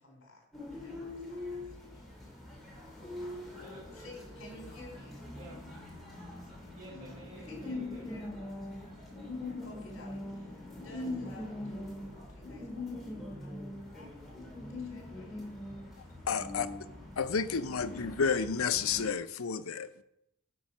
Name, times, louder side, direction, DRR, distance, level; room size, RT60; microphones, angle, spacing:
voice 1, 0.0-2.0 3.0-3.3 3.9-5.3 7.3-8.5 9.6-14.1 14.6-15.5 17.4-17.6, left 1 dB, 65° left, 3.7 m, -53 dB
sound 1, 0.5-19.1, left 2 dB, ahead, 2.9 m, -42 dB
voice 2, 3.6-4.2 5.3-5.7 6.7-8.4, right 1 dB, 35° right, 4.6 m, -51 dB
voice 3, 16.3-16.7 17.2-20.0, left 6 dB, 90° left, 0.6 m, -31 dB
11.0 x 6.4 x 6.0 m
head